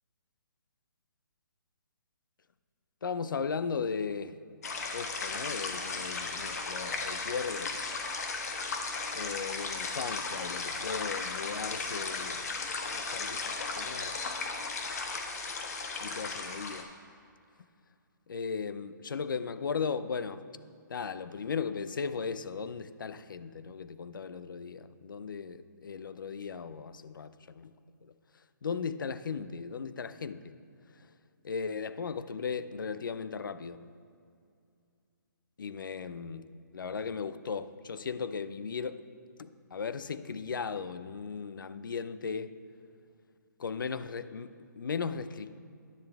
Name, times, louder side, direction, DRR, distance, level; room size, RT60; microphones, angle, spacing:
voice 1, 3.0-4.3 4.9-7.8 9.1-12.4 12.9-14.2 16.0-16.9 18.3-20.4 20.9-27.3 27.6-27.7 28.6-30.5 31.4-33.8 35.6-36.5 36.7-39.0 39.4-42.5 43.6-45.6, left 5 dB, 75° left, 0.5 m, -37 dB
sound 1, 4.6-16.8, left 4 dB, 50° left, 1.2 m, -36 dB
10.0 x 10.0 x 3.5 m
hypercardioid pair, 175°, 11 cm